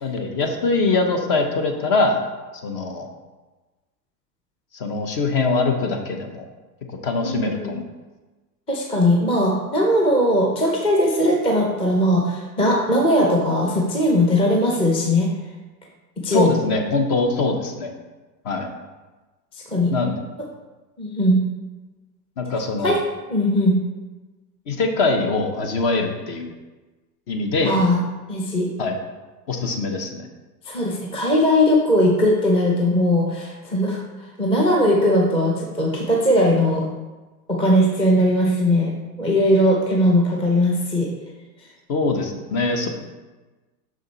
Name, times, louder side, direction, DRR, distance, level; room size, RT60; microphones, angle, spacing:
voice 1, 0.0-2.2 2.6-3.1 4.7-6.5 7.0-7.8 16.3-17.9 18.4-18.7 19.9-20.1 22.4-23.0 24.7-26.5 27.3-27.8 28.8-28.9 29.5-30.3 41.9-42.9, left 3 dB, 45° left, 4 dB, 1.1 m, -23 dB
voice 2, 7.2-7.7 8.7-15.3 16.2-16.6 19.7-19.9 21.0-21.4 22.8-23.0 23.3-23.8 27.6-28.0 28.3-28.7 30.7-34.0 34.4-36.9 37.5-38.9 39.2-41.1, left 1 dB, 10° left, -1 dB, 0.6 m, -19 dB
6.3 x 5.0 x 4.0 m, 1.2 s
hypercardioid pair, 125°, 49 cm